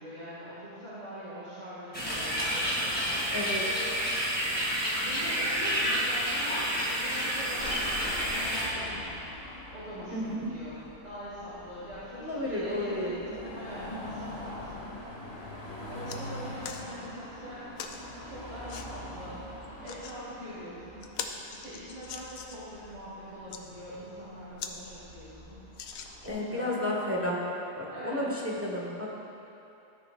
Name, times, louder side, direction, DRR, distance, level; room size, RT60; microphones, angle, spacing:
voice 1, 0.0-3.0 5.0-9.1 9.7-14.7 15.9-17.7 18.3-19.4 19.8-21.1 21.5-25.6 26.2-26.8 27.9-28.2, equal, 55° right, -11 dB, 2.4 m, -43 dB
sound 1, 1.9-8.7, equal, 5° left, 2.3 m, -29 dB
voice 2, 3.3-3.7 10.1-10.3 12.2-13.1 26.3-27.4 27.8-29.1, left 1 dB, 10° right, -4 dB, 1.2 m, -32 dB
Car passing by / Traffic noise roadway noise / Engine, 7.6-26.3, left 1 dB, 45° left, 2.1 m, -44 dB
sound 2, 16.1-16.2 16.6-16.8 17.8-18.0 18.7-18.9 19.6-20.2 20.6-20.7 21.0-22.7 23.3-23.6 24.2-24.3 24.6-24.8 25.1-25.2 25.7-26.5 27.1-27.2, left 6 dB, 70° left, 1.0 m, -41 dB
13.5 x 10.0 x 2.5 m, 2.8 s
omnidirectional pair, 1.5 m